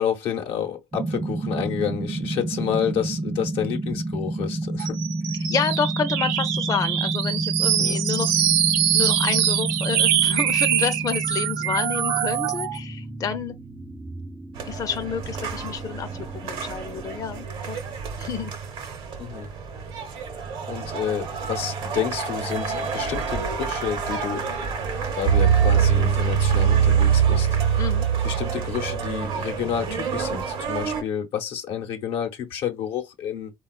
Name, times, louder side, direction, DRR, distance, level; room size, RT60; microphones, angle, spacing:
voice 1, 0.0-4.9 7.8-8.0 19.2-19.5 20.7-24.6 25.1-27.8 28.2-33.5, left 8 dB, 75° left, 0.8 m, -29 dB
sound 1, 0.9-17.4, right 2 dB, 15° right, 0.4 m, -30 dB
sound 2, 4.8-12.8, right 10 dB, 85° right, 0.4 m, -24 dB
voice 2, 5.5-8.3 8.9-13.5 14.6-16.1 16.4-17.8 18.2-18.5 27.8-28.1, left 6 dB, 40° left, 0.5 m, -29 dB
sound 3, 14.6-31.0, right 7 dB, 70° right, 0.8 m, -25 dB
3.6 x 2.3 x 2.3 m
supercardioid pair, 70°, 9 cm